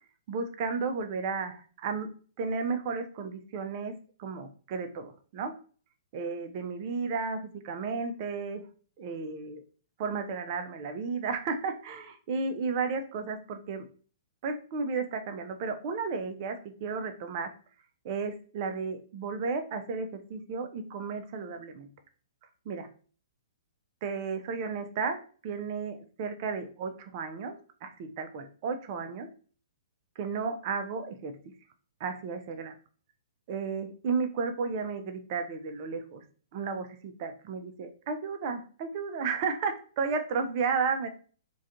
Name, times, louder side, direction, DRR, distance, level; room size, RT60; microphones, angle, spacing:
voice 1, 0.3-2.1 2.4-3.9 4.2-5.5 6.1-8.6 9.0-9.6 10.0-13.8 14.4-17.5 18.0-21.9 22.7-22.9 24.0-27.6 27.8-29.3 30.2-31.4 32.0-32.7 33.5-36.2 36.5-41.1, right 5 dB, 45° right, 7 dB, 0.4 m, -33 dB
2.4 x 2.3 x 2.7 m, 0.40 s
figure-of-eight pair, 120°, 3 cm